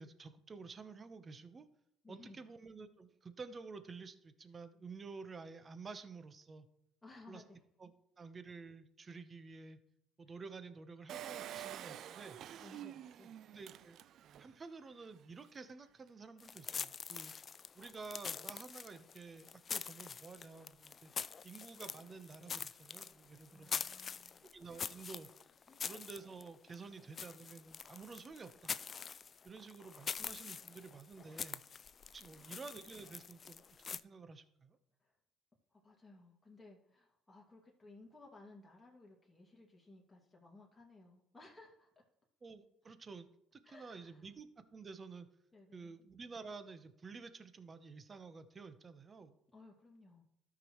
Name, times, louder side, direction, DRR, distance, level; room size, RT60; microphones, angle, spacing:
voice 1, 0.0-1.6 2.1-6.7 7.3-7.4 7.8-9.8 10.2-12.4 13.5-14.0 14.4-17.3 17.7-21.1 21.4-23.9 24.4-25.3 25.8-28.8 29.4-31.6 32.1-33.6 33.9-34.8 42.4-43.3 43.5-45.3 45.7-49.3, right 4 dB, 35° right, 11 dB, 0.9 m, -51 dB
voice 2, 2.0-2.5 7.0-7.6 12.5-13.5 23.5-24.4 25.7-25.8 32.3-32.6 35.0-35.2 35.7-41.9 43.6-44.4 45.5-46.0 49.5-50.2, left 2 dB, 15° left, -3 dB, 2.3 m, -59 dB
Engine, 11.1-14.6 15.0-15.1 15.3-15.4, right 11 dB, 60° right, 0.4 m, -48 dB
sound 1, 16.4-34.0, left 6 dB, 40° left, 0.4 m, -45 dB
13.0 x 6.0 x 3.1 m, 0.79 s
supercardioid pair, 70°, 0 cm